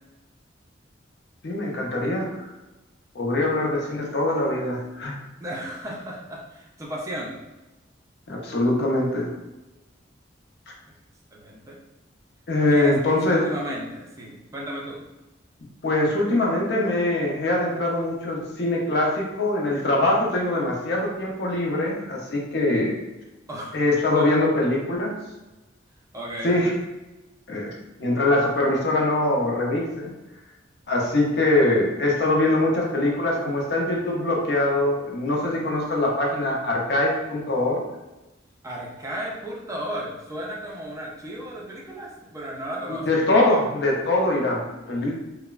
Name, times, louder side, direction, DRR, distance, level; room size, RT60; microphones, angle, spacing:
voice 1, 1.4-2.5 3.1-5.1 8.3-9.3 12.5-13.5 15.8-23.0 23.7-25.1 26.4-26.7 27.5-27.7 28.0-30.1 30.9-37.8 42.9-45.1, left 2 dB, 60° left, -1 dB, 0.6 m, -23 dB
voice 2, 5.4-7.3 11.3-11.8 12.7-15.0 23.5-23.8 24.1-24.3 26.1-26.6 38.6-43.1, right 1 dB, 15° right, -3 dB, 0.4 m, -34 dB
3.1 x 2.0 x 2.3 m, 1.0 s
head